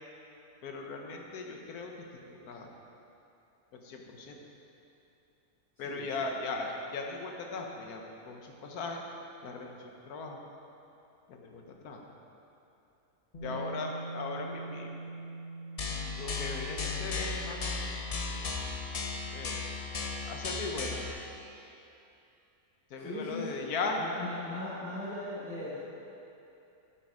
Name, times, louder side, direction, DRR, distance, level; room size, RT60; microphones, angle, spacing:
voice 1, 0.6-1.9 2.3-2.7 3.7-4.4 5.8-9.0 9.4-10.4 11.3-12.0 13.4-14.9 16.2-17.8 19.3-19.6 20.2-21.0 22.9-24.0, left 3 dB, 85° left, 2 dB, 1.4 m, -38 dB
Bass guitar, 13.3-19.6, right 2 dB, 35° left, 1.0 m, -44 dB
sound 1, 15.8-21.1, left 4 dB, 55° left, 0.4 m, -35 dB
voice 2, 23.0-23.7 24.0-25.8, left 1 dB, 10° left, -14 dB, 2.2 m, -39 dB
8.5 x 7.9 x 4.9 m, 2.8 s
omnidirectional pair, 1.5 m